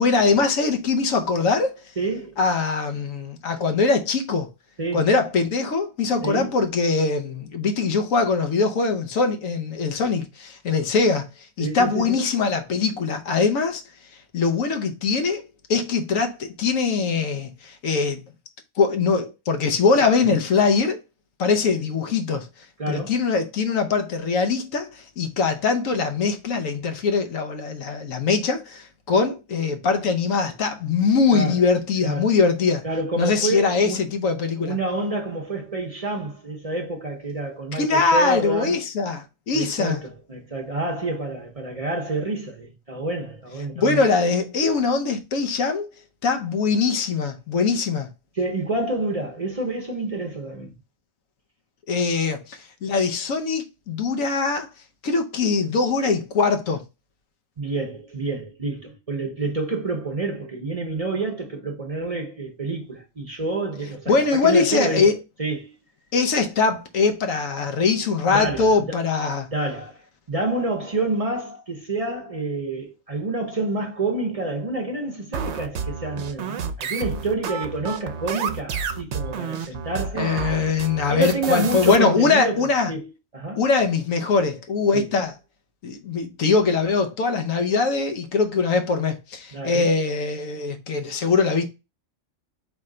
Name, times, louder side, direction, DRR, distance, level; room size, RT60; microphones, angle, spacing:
voice 1, 0.0-1.7 2.4-4.5 4.9-11.3 11.6-13.8 14.3-15.4 15.7-18.2 18.8-21.0 21.4-22.5 22.9-32.8 33.2-34.8 37.7-40.0 43.8-45.9 46.2-48.1 51.9-54.7 55.0-56.8 64.1-65.1 66.1-69.5 80.1-82.9 83.6-85.3 85.8-91.7, left 4 dB, 85° left, 1.2 m, -22 dB
voice 2, 2.0-2.4 4.8-5.0 6.2-6.6 11.6-12.2 22.8-23.2 31.3-31.6 32.0-32.3 32.8-34.1 34.6-38.8 39.5-44.0 48.4-50.8 57.6-65.1 65.4-65.7 68.3-69.0 69.5-70.0 70.3-80.4 81.1-83.6 84.9-85.1 89.5-89.9, right 2 dB, 35° right, 0.7 m, -28 dB
sound 1, 75.3-82.0, right 6 dB, 65° right, 0.9 m, -30 dB
4.3 x 3.3 x 3.7 m
omnidirectional pair, 1.3 m